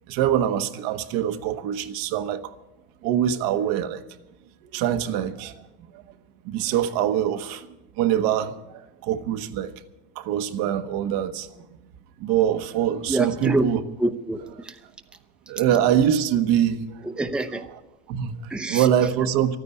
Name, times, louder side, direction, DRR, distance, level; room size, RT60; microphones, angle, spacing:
voice 1, 0.1-2.6 3.0-4.0 4.7-5.5 5.9-6.0 6.4-7.7 8.0-9.7 10.2-11.6 12.2-13.8 15.5-17.0 18.1-19.6, right 10 dB, 70° right, 9 dB, 1.1 m, -24 dB
voice 2, 13.1-13.7 14.0-14.8 17.0-17.6 18.5-18.9, right 2 dB, 5° right, 7 dB, 0.7 m, -26 dB
13.0 x 9.5 x 9.8 m, 1.0 s
supercardioid pair, 115°, 37 cm